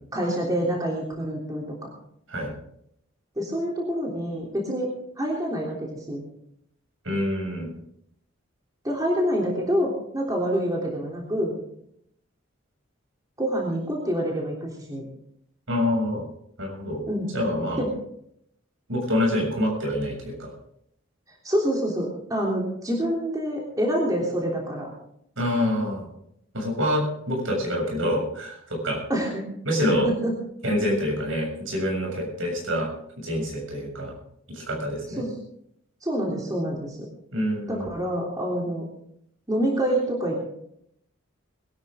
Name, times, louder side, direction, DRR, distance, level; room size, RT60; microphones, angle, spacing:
voice 1, 0.1-1.9 3.3-4.9 5.2-6.2 8.8-11.5 13.4-15.0 17.1-17.3 17.8-17.9 21.4-24.9 29.1-29.4 30.0-30.3 35.2-35.3 36.0-37.1 37.7-38.8 39.5-40.4, equal, 20° right, -2 dB, 3.3 m, -26 dB
voice 2, 7.0-7.7 15.7-16.2 16.6-17.0 17.3-17.9 18.9-20.5 25.4-26.1 26.5-29.0 29.7-30.1 30.6-32.9 33.2-34.1 34.5-35.2 37.3-37.9, left 1 dB, 70° right, 0 dB, 7.1 m, -26 dB
21.5 x 13.0 x 3.7 m, 0.72 s
head